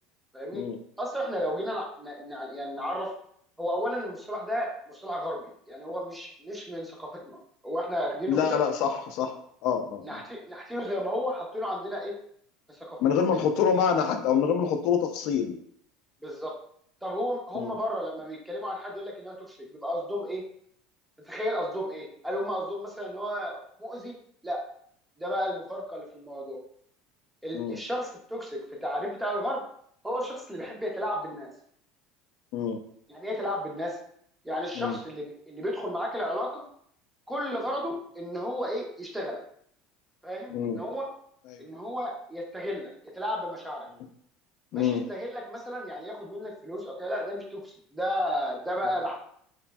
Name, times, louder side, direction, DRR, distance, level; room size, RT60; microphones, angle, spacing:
voice 1, 1.0-3.1 3.6-7.4 7.6-8.6 10.0-12.1 12.7-13.0 16.2-16.5 17.0-20.4 21.2-24.2 24.4-24.6 25.2-26.6 27.4-29.6 30.0-31.5 33.1-34.0 34.4-36.6 37.3-39.4 40.2-41.1 41.6-43.9 44.7-49.1, equal, 5° right, -1 dB, 0.5 m, -33 dB
voice 2, 8.3-9.3 9.6-10.2 13.0-15.6 17.5-17.7 27.5-27.8 32.5-32.8 34.8-35.0 40.5-40.8 41.5-41.7 44.7-45.0, left 7 dB, 55° left, 6 dB, 0.4 m, -26 dB
3.0 x 2.5 x 2.2 m, 0.65 s
cardioid pair, 155°, 0 cm